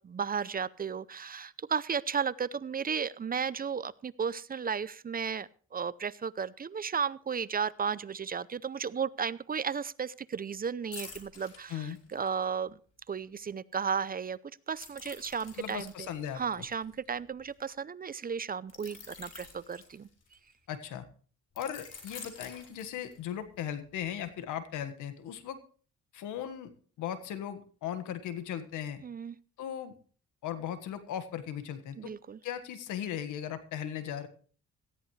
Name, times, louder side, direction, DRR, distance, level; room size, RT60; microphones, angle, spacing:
voice 1, 0.0-12.8 13.1-14.4 14.7-16.1 16.3-20.1 29.0-29.4 32.0-32.4, right 6 dB, 30° right, 19 dB, 0.5 m, -34 dB
sound 1, 10.9-12.5 14.8-17.5 18.7-20.5 21.6-23.4 23.8-24.0, left 5 dB, 55° left, 4.7 m, -49 dB
voice 2, 15.6-16.6 20.7-21.1 21.5-25.6 26.1-29.0 29.6-29.9 30.4-32.1 32.4-34.3, left 9 dB, 90° left, 11 dB, 1.6 m, -38 dB
17.5 x 13.5 x 3.2 m, 0.43 s
cardioid pair, 90°, 30 cm